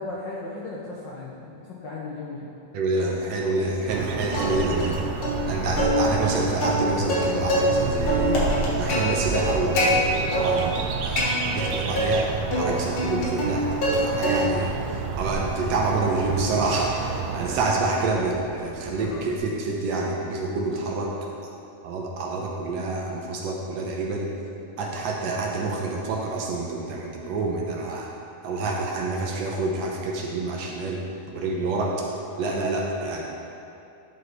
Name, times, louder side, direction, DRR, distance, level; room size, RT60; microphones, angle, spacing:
voice 1, 0.0-2.5, left 2 dB, 85° left, -5 dB, 1.0 m, -36 dB
voice 2, 2.7-5.0 5.5-8.5 8.8-12.3 12.6-13.7 14.0-14.8 15.2-21.1 21.8-24.3 24.8-28.1 28.4-32.0 32.4-33.2, right 3 dB, 70° right, -1 dB, 1.9 m, -27 dB
sound 1, 3.9-17.6, right 5 dB, 90° right, 2.0 m, -30 dB
Plucked string instrument, 4.3-5.0 5.2-5.4 5.8-7.8 8.1-9.9 10.3-10.9 11.2-12.1 12.5-14.0 14.2-14.7 15.1-19.4, equal, 50° left, 2.0 m, -26 dB
11.0 x 5.4 x 4.0 m, 2.7 s
omnidirectional pair, 3.3 m